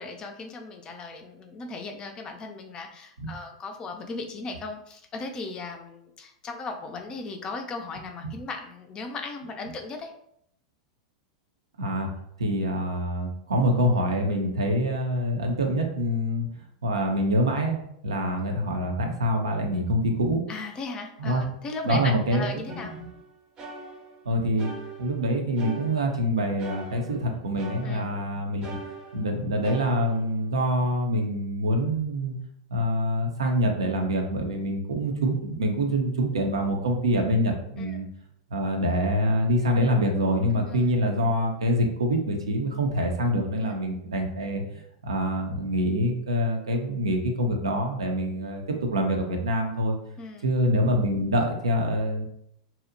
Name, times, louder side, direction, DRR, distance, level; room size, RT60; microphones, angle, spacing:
voice 1, 0.0-10.1 18.4-18.6 20.5-22.9 27.8-28.1 37.8-38.0 40.4-40.9 43.6-43.8 50.2-50.5, left 3 dB, 30° left, 4 dB, 0.4 m, -37 dB
voice 2, 11.8-12.1 12.4-16.5 16.8-20.4 21.2-21.4 21.8-22.8 24.3-24.7 25.0-28.7 29.1-32.4 32.7-38.1 38.5-44.6 45.0-48.6 48.9-50.0 50.4-52.3, equal, 80° right, 3 dB, 0.5 m, -25 dB
sound 1, 22.7-24.3 24.6-26.3 26.6-28.3 28.6-30.7, right 3 dB, 30° right, 0.6 m, -42 dB
2.7 x 2.0 x 2.5 m, 0.73 s
figure-of-eight pair, 95°, 3 cm